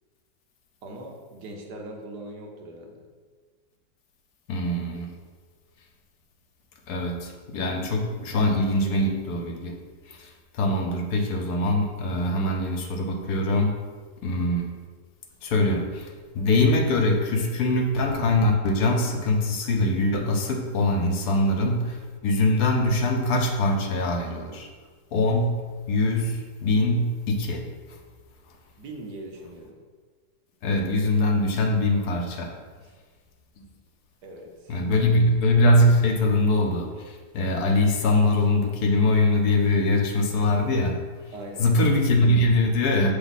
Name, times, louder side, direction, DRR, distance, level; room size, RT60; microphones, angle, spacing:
voice 1, 0.8-3.0 28.8-29.8 32.8-32.9 34.2-34.8 41.3-41.7, right 1 dB, 70° right, 1 dB, 1.4 m, -40 dB
voice 2, 4.5-5.1 6.9-9.8 10.1-13.7 14.2-14.7 15.4-16.1 16.3-24.7 25.1-27.6 30.6-32.5 33.6-33.7 34.7-41.0 41.6-43.1, left 1 dB, 70° left, 3 dB, 1.2 m, -23 dB
6.9 x 3.4 x 4.0 m, 1.5 s
omnidirectional pair, 1.8 m